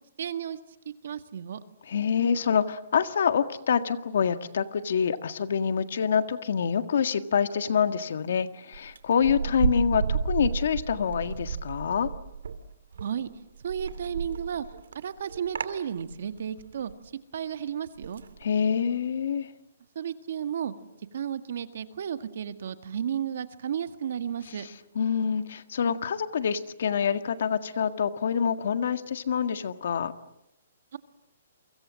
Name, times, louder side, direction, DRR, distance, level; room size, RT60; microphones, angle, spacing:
voice 1, 0.2-0.6 0.9-1.6 13.0-13.3 13.6-14.7 14.9-16.9 17.3-18.2 20.0-20.7 21.1-24.7 30.9-31.0, right 8 dB, 50° right, 10 dB, 1.8 m, -33 dB
voice 2, 1.9-12.1 18.4-19.5 24.6-24.7 25.0-30.1, left 7 dB, 50° left, 10 dB, 1.7 m, -26 dB
sound 1, 8.7-12.6 12.9-16.9 18.0-18.4, right 6 dB, 70° right, 2.7 m, -32 dB
29.5 x 24.5 x 7.6 m, 0.84 s
hypercardioid pair, 180°, 0 cm